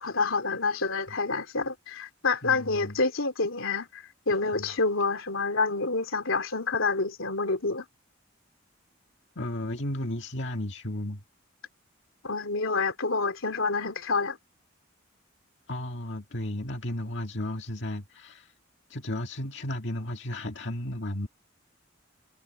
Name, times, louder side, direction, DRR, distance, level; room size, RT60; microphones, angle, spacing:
voice 1, 0.0-7.8 12.2-14.4, left 4 dB, 85° left, 2.9 m, -28 dB
voice 2, 2.4-3.0 4.6-4.7 9.4-11.2 15.7-18.5 18.9-21.3, left 1 dB, 60° left, 2.1 m, -34 dB
head